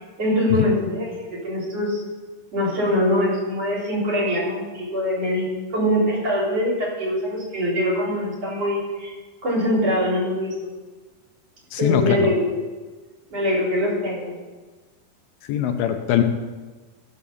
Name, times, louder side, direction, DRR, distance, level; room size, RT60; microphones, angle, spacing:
voice 1, 0.2-2.0 2.5-5.5 5.7-9.1 9.4-10.7 11.8-12.5 13.3-14.3, left 1 dB, 40° right, -5 dB, 5.3 m, -23 dB
voice 2, 11.7-12.3 15.5-16.2, left 10 dB, 80° left, 6 dB, 2.6 m, -21 dB
15.5 x 6.2 x 7.1 m, 1.3 s
omnidirectional pair, 4.4 m